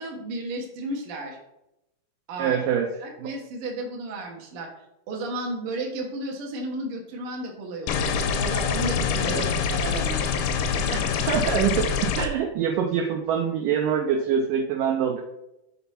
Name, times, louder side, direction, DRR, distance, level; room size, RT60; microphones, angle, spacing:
voice 1, 0.0-1.4 2.3-2.6 3.0-4.7 5.1-10.5, right 2 dB, 70° right, 0 dB, 1.3 m, -33 dB
voice 2, 2.4-2.9 3.2-3.3 9.2-9.5 10.9-15.2, right 8 dB, 90° right, 3 dB, 1.9 m, -25 dB
sound 1, 7.9-12.3, left 6 dB, 85° left, 2.7 m, -25 dB
6.8 x 4.0 x 5.7 m, 0.88 s
omnidirectional pair, 4.7 m